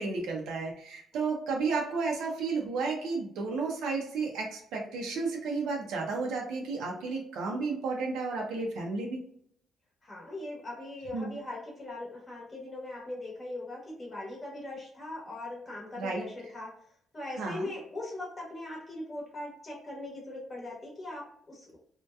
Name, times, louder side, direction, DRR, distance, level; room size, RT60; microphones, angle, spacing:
voice 1, 0.0-9.2 11.1-11.3 16.0-16.2 17.4-17.6, right 4 dB, 85° right, 0 dB, 0.5 m, -32 dB
voice 2, 10.0-21.8, left 2 dB, 25° left, -3 dB, 0.9 m, -40 dB
2.7 x 2.1 x 2.2 m, 0.67 s
cardioid pair, 90°, 0 cm